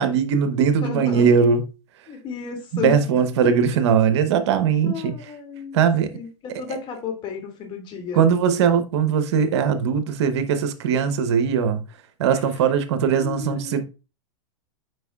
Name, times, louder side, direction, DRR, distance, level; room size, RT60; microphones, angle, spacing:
voice 1, 0.0-1.6 2.7-5.2 5.7-6.1 6.7-6.8 8.1-11.8 12.2-13.8, right 7 dB, 65° right, 0.9 m, -20 dB
voice 2, 0.8-1.3 2.1-3.0 4.8-5.8 6.1-8.3 12.3-12.7 13.2-13.7, left 6 dB, 35° left, 2.3 m, -33 dB
7.8 x 5.2 x 2.3 m
hypercardioid pair, 125°, 15 cm